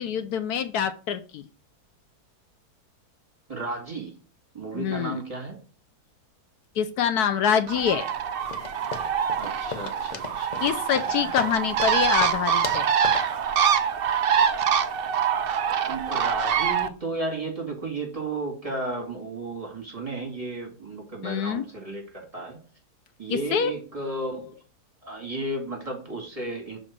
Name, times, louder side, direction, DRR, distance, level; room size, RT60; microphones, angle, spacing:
voice 1, 0.0-1.4 4.7-5.2 6.8-8.1 10.6-12.9 21.2-21.6 23.3-23.7, left 8 dB, 75° left, 11 dB, 1.2 m, -25 dB
voice 2, 3.5-4.2 4.5-5.6 9.4-10.8 15.8-22.6 23.2-24.5 25.0-26.8, right 2 dB, 20° right, 0 dB, 2.2 m, -33 dB
Bird, 7.7-16.9, right 7 dB, 85° right, 0.5 m, -25 dB
sound 1, 8.5-13.4, left 5 dB, 45° left, 0.5 m, -38 dB
6.2 x 4.0 x 6.0 m, 0.36 s
omnidirectional pair, 1.7 m